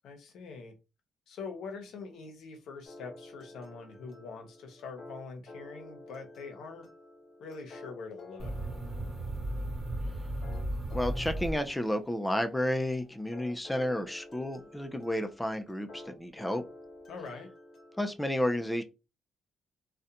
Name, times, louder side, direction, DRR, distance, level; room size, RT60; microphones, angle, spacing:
voice 1, 0.0-0.7 1.3-6.9 7.4-8.5 17.1-17.5, left 4 dB, 80° left, 0.7 m, -44 dB
sound 1, 2.8-18.1, left 2 dB, 55° left, 1.1 m, -52 dB
sound 2, 8.4-12.1, right 1 dB, 45° right, 0.9 m, -35 dB
voice 2, 10.9-16.6 18.0-18.8, left 1 dB, 5° left, 0.3 m, -31 dB
2.4 x 2.1 x 2.7 m
cardioid pair, 90°, 0 cm